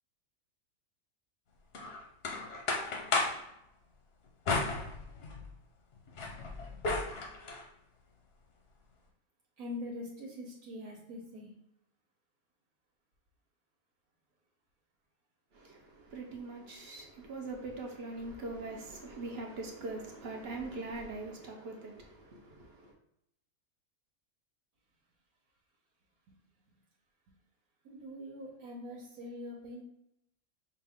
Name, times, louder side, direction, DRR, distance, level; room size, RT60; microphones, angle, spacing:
sound 1, 1.7-3.5 4.4-5.5 5.9-7.6, left 3 dB, 50° left, 0.8 m, -34 dB
voice 1, 9.6-11.5 27.8-29.8, left 1 dB, 85° right, -3 dB, 1.4 m, -43 dB
voice 2, 15.5-22.9, right 2 dB, 50° right, 1 dB, 0.9 m, -42 dB
5.8 x 2.5 x 3.5 m, 0.79 s
omnidirectional pair, 1.5 m